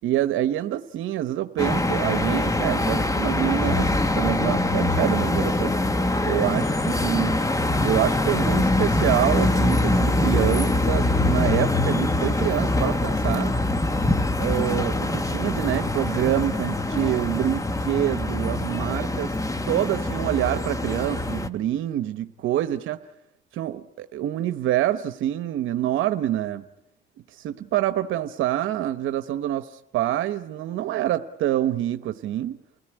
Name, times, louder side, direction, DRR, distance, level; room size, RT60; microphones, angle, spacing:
voice 1, 0.0-5.8 6.2-7.3 7.8-13.6 14.4-19.3 19.7-23.0 23.5-26.6 27.3-32.6, right 12 dB, 85° right, 10 dB, 0.9 m, -26 dB
sound 1, 1.6-21.5, left 2 dB, 15° left, 1.2 m, -23 dB
28.5 x 17.5 x 9.9 m, 0.91 s
cardioid pair, 90°, 20 cm